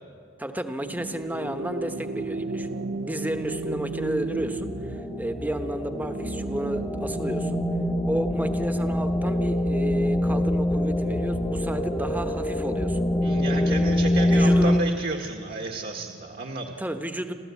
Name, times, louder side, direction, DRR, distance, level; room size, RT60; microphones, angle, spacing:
voice 1, 0.4-2.8 3.0-7.6 8.1-13.0 14.3-14.8 16.8-17.3, right 1 dB, 10° right, 8 dB, 1.1 m, -31 dB
sound 1, 0.8-13.2 13.5-16.5, right 3 dB, 70° right, 0.9 m, -36 dB
sound 2, 3.5-14.8, left 1 dB, 15° left, 1.0 m, -25 dB
voice 2, 13.2-16.8, right 3 dB, 50° right, 3 dB, 1.4 m, -32 dB
28.5 x 13.5 x 8.3 m, 2.4 s
head